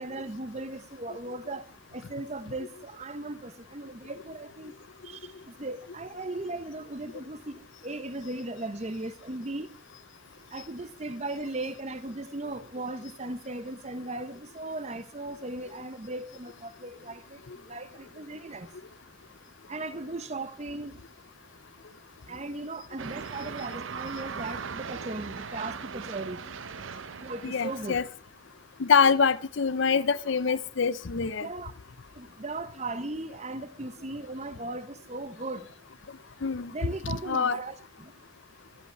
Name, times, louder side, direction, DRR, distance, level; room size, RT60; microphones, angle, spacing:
voice 1, 0.0-1.6 1.9-4.7 5.0-5.2 5.6-9.7 10.5-17.4 17.7-18.7 19.7-20.9 22.3-26.4 27.2-28.0 31.4-31.7 32.2-35.7 36.7-38.1, right 2 dB, 30° right, 0.9 m, -37 dB
sound 1, 23.0-28.1, right 6 dB, 70° right, 0.6 m, -39 dB
voice 2, 27.4-28.0 28.8-31.5 36.4-36.7 37.0-37.6, left 5 dB, 65° left, 0.6 m, -25 dB
23.0 x 8.2 x 4.5 m
head